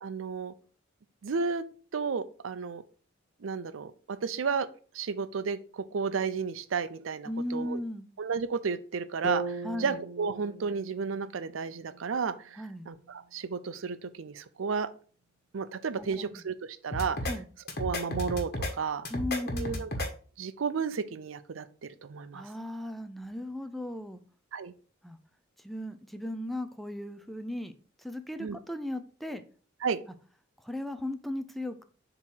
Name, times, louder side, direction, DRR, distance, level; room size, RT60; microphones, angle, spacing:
voice 1, 0.0-0.5 1.2-1.6 1.9-2.8 3.4-4.7 4.9-7.8 8.2-14.9 15.5-17.2 17.8-19.1 19.5-19.9 20.4-22.5 24.5-24.7 28.4-28.6 29.8-30.0, right 5 dB, 80° right, 12 dB, 0.5 m, -33 dB
voice 2, 7.3-8.1 9.6-10.0 12.6-12.9 16.0-16.4 17.3-17.5 19.1-19.8 22.3-24.2 25.0-25.2 25.6-27.7 28.0-29.4 30.6-31.8, left 1 dB, ahead, 9 dB, 0.4 m, -36 dB
sound 1, 9.2-13.3, right 1 dB, 40° right, 1.0 m, -40 dB
sound 2, 16.9-17.3 17.7-18.7 19.1-20.1, left 1 dB, 55° left, 1.3 m, -32 dB
7.2 x 3.0 x 4.5 m, 0.41 s
head